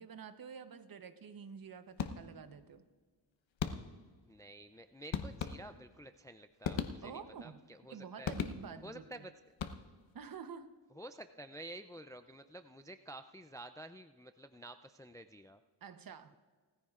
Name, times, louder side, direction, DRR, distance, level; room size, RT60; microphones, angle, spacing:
voice 1, 0.0-2.8 7.0-7.6 7.9-9.3 10.1-10.7 15.8-16.3, right 6 dB, 50° right, 11 dB, 0.9 m, -49 dB
sound 1, 2.0-2.5 3.6-4.2 5.1-6.0 6.6-7.4 8.2-9.0 9.5-10.2, left 7 dB, 75° left, 0.9 m, -39 dB
voice 2, 4.3-8.3 8.8-9.3 10.9-15.6, right 1 dB, 10° left, 9 dB, 0.3 m, -50 dB
19.5 x 14.5 x 2.4 m, 1.5 s
cardioid pair, 90°, 46 cm